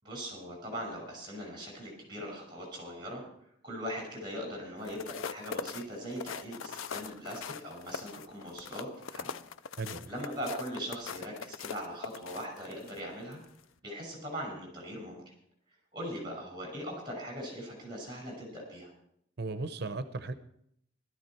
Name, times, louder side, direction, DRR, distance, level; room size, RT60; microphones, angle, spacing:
voice 1, 0.0-3.2 3.6-9.4 10.1-13.4 13.8-15.2 15.9-18.9, equal, 25° right, 1 dB, 5.8 m, -40 dB
sound 1, 4.8-13.0 13.4-13.6, left 6 dB, 80° left, 0.5 m, -41 dB
voice 2, 9.8-10.1 19.4-20.3, right 3 dB, 55° right, 11 dB, 0.7 m, -36 dB
16.0 x 13.0 x 4.4 m, 0.70 s
head